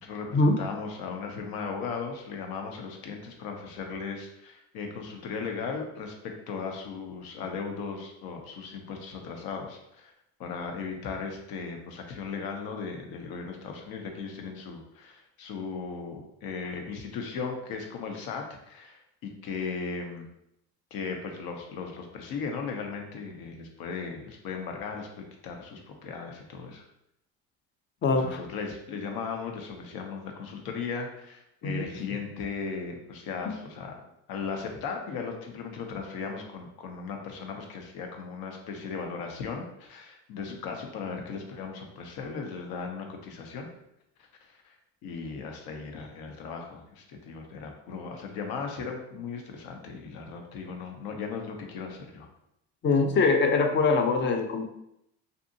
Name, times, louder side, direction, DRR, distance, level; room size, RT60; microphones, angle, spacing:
voice 1, 0.0-10.1 10.4-20.3 20.9-26.8 28.1-33.9 34.3-43.7 44.2-44.8 45.0-52.3, left 5 dB, 65° left, 3 dB, 0.7 m, -37 dB
voice 2, 28.0-28.4 31.6-31.9 33.5-33.6 52.8-54.7, left 3 dB, 30° left, 5 dB, 0.4 m, -23 dB
2.6 x 2.6 x 2.6 m, 0.79 s
supercardioid pair, 75°, 39 cm